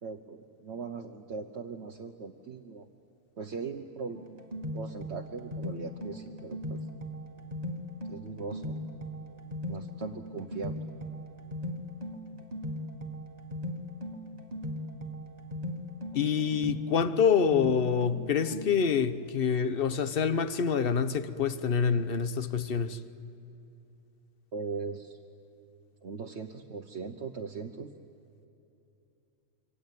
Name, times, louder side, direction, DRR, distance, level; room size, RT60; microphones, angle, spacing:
voice 1, 0.0-2.9 3.4-4.2 4.7-6.9 8.1-8.8 9.7-10.9 24.5-25.2 26.0-27.9, right 5 dB, 60° right, 1.3 m, -39 dB
sound 1, 4.1-19.0, left 1 dB, 30° right, 1.9 m, -39 dB
voice 2, 16.1-23.0, left 6 dB, 50° left, 1.1 m, -26 dB
27.0 x 24.0 x 9.3 m
omnidirectional pair, 1.3 m